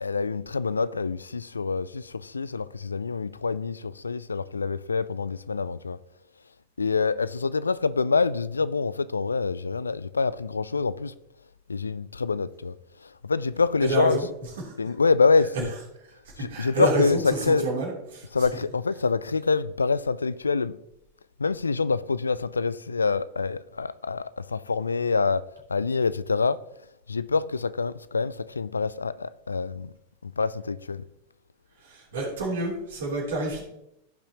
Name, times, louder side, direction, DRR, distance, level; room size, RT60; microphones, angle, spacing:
voice 1, 0.0-6.0 6.8-11.1 11.7-12.8 13.0-14.2 14.8-15.7 16.4-17.7 18.3-20.8 21.4-26.6 27.1-29.9 30.2-31.0, left 4 dB, 75° left, 0.3 m, -26 dB
voice 2, 13.8-14.3 14.6-14.7 16.4-18.3 31.8-33.6, right 2 dB, 60° right, 3.2 m, -28 dB
15.5 x 5.8 x 3.0 m
figure-of-eight pair, 90°, 0 cm